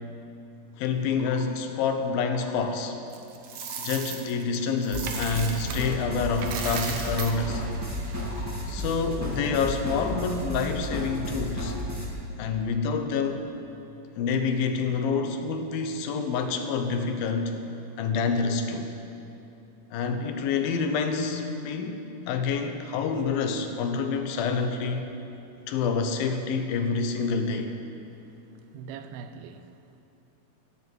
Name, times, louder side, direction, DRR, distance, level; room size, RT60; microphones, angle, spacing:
voice 1, 0.8-3.0 3.8-7.6 8.7-11.7 12.4-13.4 14.2-17.5 18.0-18.9 19.9-25.1 25.7-27.7, left 5 dB, 85° left, 6 dB, 2.7 m, -27 dB
sound 1, 1.1-1.5 2.1-2.8 3.4-4.1 4.7-5.4 6.0-6.4 7.0-7.6 8.1-8.6, left 4 dB, 55° left, 1.7 m, -46 dB
Coin (dropping), 3.1-6.0 6.3-8.6, right 6 dB, 70° right, 1.6 m, -36 dB
sound 2, 4.9-12.1, left 1 dB, 20° right, 0.5 m, -33 dB
voice 2, 28.1-30.0, right 7 dB, 85° right, 10 dB, 2.5 m, -44 dB
15.0 x 7.6 x 7.9 m, 2.9 s
omnidirectional pair, 4.1 m